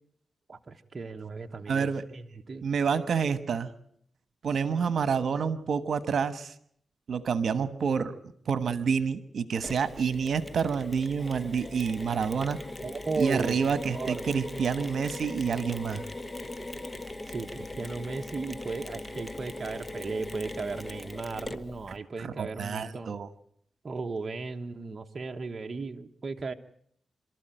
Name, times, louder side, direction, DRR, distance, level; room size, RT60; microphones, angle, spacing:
voice 1, 0.5-2.6 12.8-13.6 13.9-14.2 17.3-23.1 23.8-26.5, right 4 dB, 40° right, 4 dB, 1.1 m, -36 dB
voice 2, 1.7-2.1 2.6-3.7 4.4-6.5 7.1-8.1 8.5-12.6 13.2-16.0 22.2-23.3, right 6 dB, 70° right, 13 dB, 1.2 m, -28 dB
Mechanisms, 9.6-22.0, left 2 dB, 20° left, 1.3 m, -40 dB
27.5 x 13.5 x 9.0 m, 0.67 s
cardioid pair, 85°, 0 cm